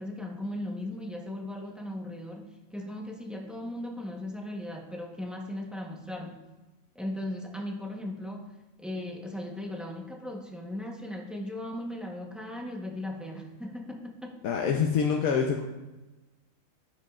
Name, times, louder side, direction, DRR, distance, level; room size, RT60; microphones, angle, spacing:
voice 1, 0.0-6.5 6.9-14.3, left 1 dB, ahead, 1 dB, 0.6 m, -37 dB
voice 2, 14.4-15.6, left 6 dB, 80° left, 2 dB, 1.1 m, -25 dB
15.0 x 5.1 x 2.4 m, 1.1 s
omnidirectional pair, 1.4 m